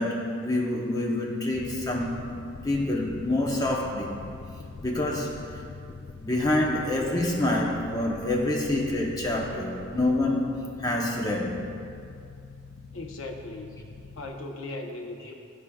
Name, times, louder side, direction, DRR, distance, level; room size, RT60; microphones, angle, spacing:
voice 1, 0.0-2.3 2.6-4.2 4.8-5.6 6.2-11.6 14.4-14.6, left 1 dB, 20° left, -2 dB, 0.7 m, -27 dB
sound 1, 1.5-14.3, left 4 dB, 40° left, 0.4 m, -43 dB
voice 2, 12.9-13.8 14.2-15.3, left 2 dB, 75° left, 2 dB, 0.8 m, -38 dB
14.0 x 4.9 x 2.3 m, 2.4 s
head